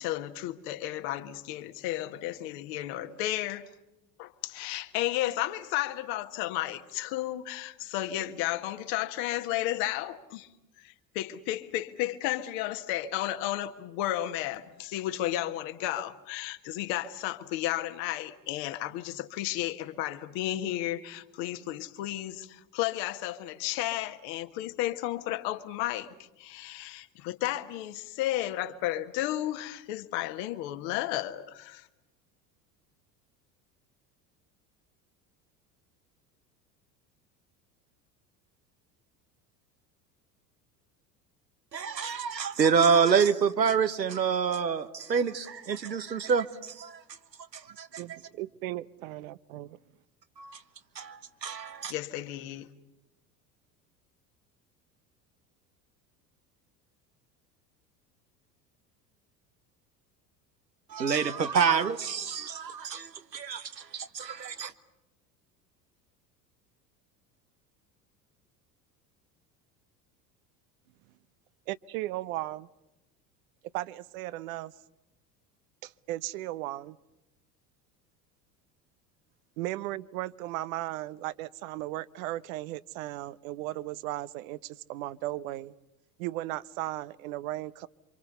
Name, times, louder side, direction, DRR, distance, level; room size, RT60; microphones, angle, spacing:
voice 1, 0.0-3.7 4.2-10.5 10.8-31.9 51.9-52.7, left 14 dB, 55° left, 1.7 m, -33 dB
voice 2, 41.7-47.0 47.5-47.9 50.4-50.6 50.9-51.9 60.9-64.7, right 6 dB, 85° right, 1.3 m, -27 dB
voice 3, 48.0-49.8 71.7-72.7 73.7-74.7 75.8-77.0 79.6-85.7 86.2-87.9, right 16 dB, 55° right, 0.8 m, -36 dB
28.0 x 25.5 x 6.8 m
figure-of-eight pair, 70°, 49 cm